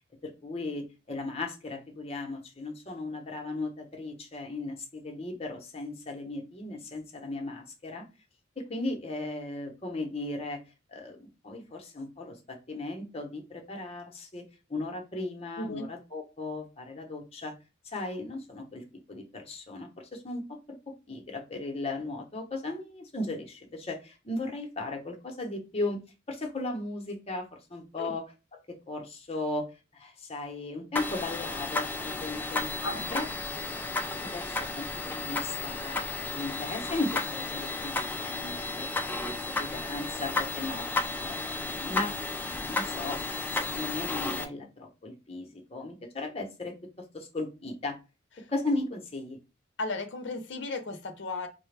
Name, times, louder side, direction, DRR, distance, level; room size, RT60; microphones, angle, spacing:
voice 1, 0.2-8.0 8.6-10.6 10.9-14.4 14.7-17.5 17.8-20.8 21.1-26.0 26.3-28.2 28.7-32.7 33.1-33.3 34.2-36.0 36.3-38.9 39.3-40.9 41.2-42.2 42.4-46.7 47.1-48.0 48.5-49.4, left 2 dB, 30° left, 2 dB, 0.8 m, -36 dB
voice 2, 15.6-15.9 28.0-28.1 32.8-33.1 49.8-51.5, left 2 dB, 60° left, 7 dB, 0.7 m, -35 dB
sound 1, 31.0-44.5, left 3 dB, 10° left, 0.3 m, -33 dB
4.8 x 2.2 x 3.3 m, 0.29 s
head